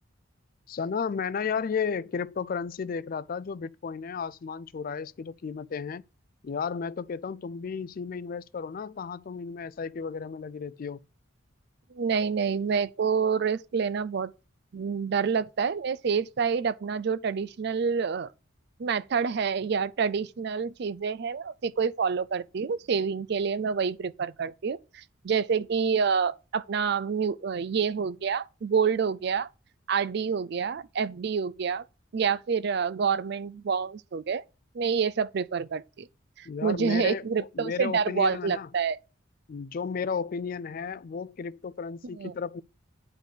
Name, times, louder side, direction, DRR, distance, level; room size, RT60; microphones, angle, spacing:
voice 1, 0.7-6.0 6.4-11.0 36.5-37.2 37.5-38.7 39.5-42.6, left 6 dB, 45° left, 0.4 m, -33 dB
voice 2, 11.9-14.3 14.7-18.3 18.8-29.5 29.9-31.8 32.1-34.4 34.7-36.1 36.4-39.0 42.2-42.3, right 6 dB, 55° right, 0.4 m, -27 dB
9.7 x 4.1 x 6.6 m
head